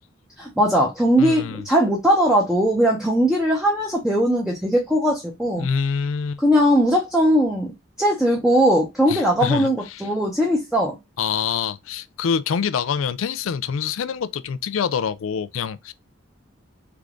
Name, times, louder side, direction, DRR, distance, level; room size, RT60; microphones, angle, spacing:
voice 1, 0.4-5.7 6.4-7.7 8.0-11.0, equal, 5° right, 0.7 m, -19 dB
voice 2, 1.2-1.6 5.6-6.4 9.1-10.1 11.2-15.9, left 6 dB, 90° left, 0.4 m, -26 dB
3.6 x 3.4 x 3.7 m
head